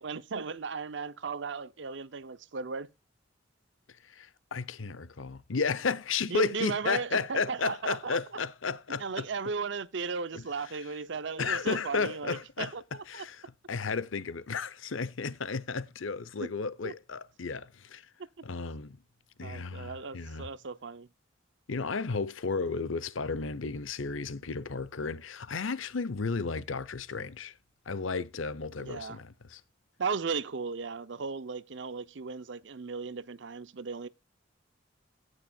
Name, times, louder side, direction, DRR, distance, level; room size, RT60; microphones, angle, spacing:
voice 1, 0.0-2.9 6.3-8.2 9.0-12.8 13.1-13.2 16.4-16.5 16.8-16.9 19.4-21.1 28.8-29.2 30.0-34.1, right 4 dB, 60° right, 0.6 m, -36 dB
voice 2, 3.9-9.3 10.3-10.9 11.4-12.7 13.1-18.1 18.4-19.0 19.4-20.5 21.7-27.6 27.9-29.6, left 4 dB, 85° left, 0.8 m, -33 dB
17.5 x 6.6 x 2.3 m
head